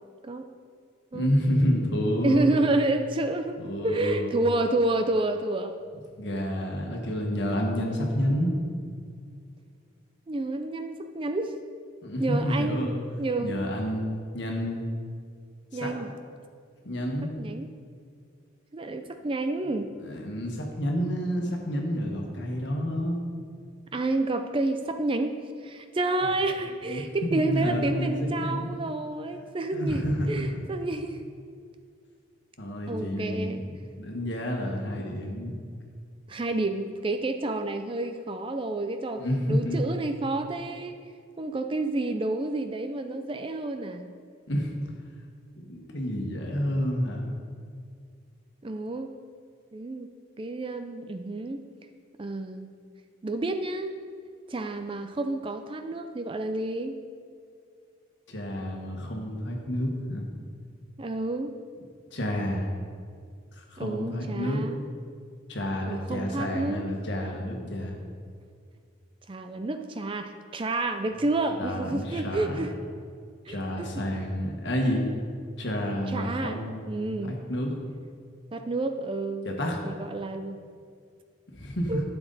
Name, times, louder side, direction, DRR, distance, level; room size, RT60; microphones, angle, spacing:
voice 1, 1.1-2.5 3.6-4.3 6.2-8.6 12.0-13.0 13.4-14.8 15.8-15.9 16.8-17.3 20.0-23.2 26.9-28.7 29.7-30.6 32.6-33.5 34.0-35.5 39.2-39.8 44.5-44.7 45.6-47.3 58.3-60.3 62.1-62.7 63.5-64.6 65.5-68.0 71.6-72.7 73.5-75.0 75.6-76.9 77.3-77.8 79.4-79.8 81.5-82.0, equal, 60° left, 0 dB, 1.5 m, -29 dB
voice 2, 2.2-3.6 3.8-5.8 10.3-11.5 12.2-12.9 13.2-13.6 15.7-16.1 17.4-17.7 18.7-20.0 23.9-31.2 32.9-33.6 36.3-41.0 41.4-44.1 48.6-49.1 49.7-50.1 50.4-51.6 52.2-52.7 53.2-54.0 54.5-57.0 61.0-61.5 63.8-64.9 65.9-66.9 69.3-72.7 73.5-74.1 76.1-77.4 78.5-79.5 79.8-80.6 81.9-82.0, right 2 dB, 25° right, 7 dB, 0.4 m, -29 dB
11.5 x 7.1 x 4.1 m, 2.2 s
head